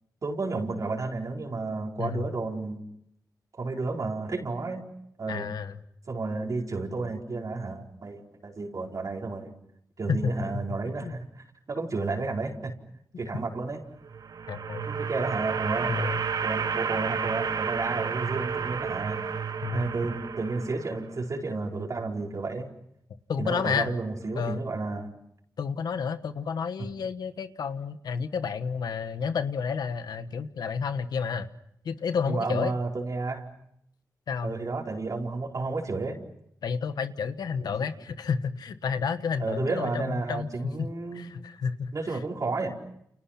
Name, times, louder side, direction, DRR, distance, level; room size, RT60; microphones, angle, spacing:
voice 1, 0.2-2.8 3.6-4.8 5.2-5.4 6.1-9.5 10.0-12.7 13.2-13.8 14.8-19.4 19.7-22.7 23.4-25.1 26.8-26.9 32.3-33.5 34.4-36.2 39.4-41.3 41.9-42.7, right 3 dB, 55° right, 0 dB, 4.7 m, -32 dB
voice 2, 2.0-2.3 5.3-5.7 10.1-10.3 10.9-11.1 14.5-14.9 15.9-16.2 19.6-19.9 23.3-23.9 24.3-24.6 25.6-31.5 31.8-32.8 34.3-34.5 36.6-40.5 40.8-40.9 41.1-42.2, left 6 dB, 90° left, 11 dB, 1.3 m, -31 dB
sound 1, 14.0-21.1, right 6 dB, 70° right, 1.0 m, -31 dB
29.5 x 29.5 x 5.8 m, 0.74 s
cardioid pair, 70°, 7 cm